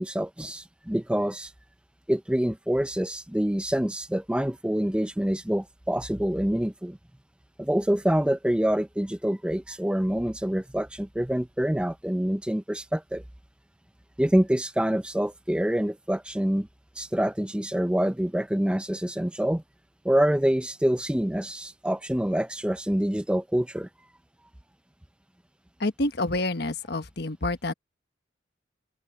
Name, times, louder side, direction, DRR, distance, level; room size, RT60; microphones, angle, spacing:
voice 1, 0.0-1.5 2.1-7.0 7.6-13.2 14.2-16.7 17.0-19.6 20.0-23.9, equal, 5° right, 0.5 m, -26 dB
voice 2, 25.8-27.7, left 2 dB, 55° left, 1.4 m, -28 dB
open air
head